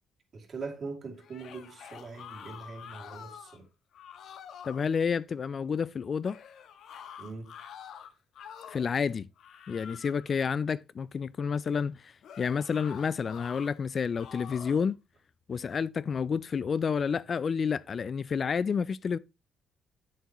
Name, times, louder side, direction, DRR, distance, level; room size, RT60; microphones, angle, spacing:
voice 1, 0.3-3.6 7.2-7.5, right 4 dB, 50° right, 2.5 m, -41 dB
sound 1, 1.2-3.6 3.9-4.9 6.2-9.0 9.4-10.3 12.2-13.7 14.1-14.9, left 8 dB, 70° left, 1.0 m, -47 dB
voice 2, 4.6-6.4 8.7-9.3 9.7-15.0 15.5-19.2, left 6 dB, 45° left, 0.3 m, -30 dB
8.2 x 7.5 x 3.0 m
cardioid pair, 90°, 0 cm